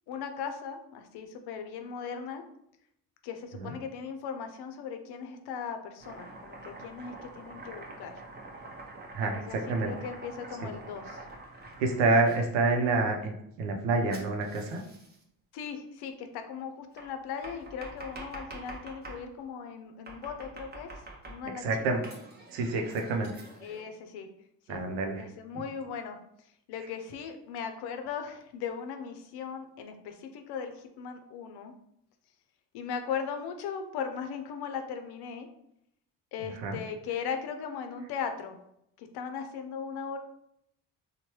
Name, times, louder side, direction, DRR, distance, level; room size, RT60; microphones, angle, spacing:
voice 1, 0.1-2.4 3.2-8.1 9.5-11.2 15.5-20.9 21.3-21.7 23.6-24.3 24.7-24.8 25.2-26.2 26.7-31.7 32.7-35.5 36.3-38.6 39.0-40.2, left 6 dB, 65° left, 7 dB, 0.6 m, -38 dB
Domestic sounds home sounds, 6.0-12.4 14.1-15.2 17.0-19.2 20.1-21.6 22.0-23.8, right 2 dB, 25° right, 0.7 m, -46 dB
voice 2, 9.1-9.9 10.6-10.7 11.8-14.8 21.6-22.0 22.5-23.3 24.7-25.3 25.5-25.6 36.6-36.8, right 3 dB, 90° right, 4 dB, 0.6 m, -28 dB
3.0 x 2.2 x 2.9 m, 0.76 s
supercardioid pair, 80°, 42 cm